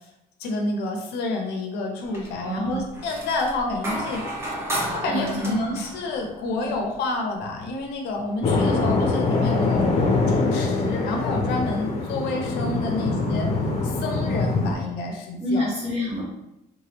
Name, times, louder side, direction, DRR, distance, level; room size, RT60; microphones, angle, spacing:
voice 1, 0.4-4.2 4.9-9.8 10.3-13.5 13.8-15.7, left 2 dB, 80° left, 2 dB, 0.6 m, -29 dB
sound 1, 2.0-2.5 2.8-7.0 8.5-8.6 9.1-9.8, right 1 dB, 15° right, 0.9 m, -33 dB
voice 2, 2.4-2.8 5.1-5.8 6.6-6.7 12.9-13.4 15.4-16.3, left 1 dB, 40° right, -5 dB, 1.4 m, -28 dB
sound 2, 8.4-14.7, left 3 dB, 40° left, 0.6 m, -23 dB
3.2 x 2.2 x 2.9 m, 0.87 s
cardioid pair, 110°, 17 cm